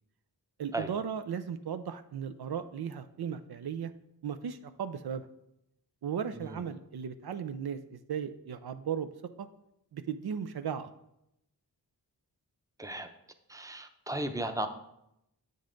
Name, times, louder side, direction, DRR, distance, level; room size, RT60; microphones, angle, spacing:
voice 1, 0.6-3.9 4.2-5.2 6.0-9.1 9.4-9.5 9.9-10.9, right 7 dB, 70° right, 10 dB, 0.5 m, -36 dB
voice 2, 13.5-14.7, right 1 dB, 10° right, 7 dB, 0.7 m, -35 dB
7.6 x 5.4 x 3.8 m, 0.81 s
cardioid pair, 40°, 40 cm